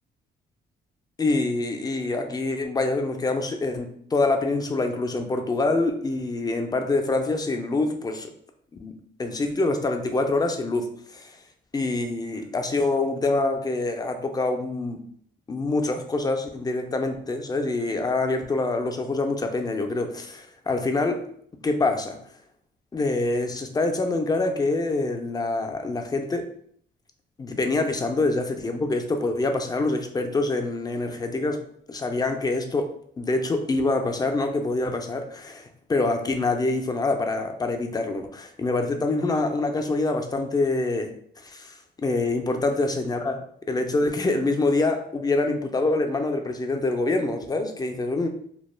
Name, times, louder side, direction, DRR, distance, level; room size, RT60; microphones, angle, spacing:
voice 1, 1.2-8.3 8.8-11.4 11.7-15.0 15.5-21.2 21.6-22.2 22.9-26.5 27.4-31.6 31.9-32.9 33.2-43.4 43.7-48.3, left 2 dB, 20° left, 5 dB, 0.4 m, -25 dB
2.2 x 2.1 x 3.1 m, 0.63 s
cardioid pair, 90°, 20 cm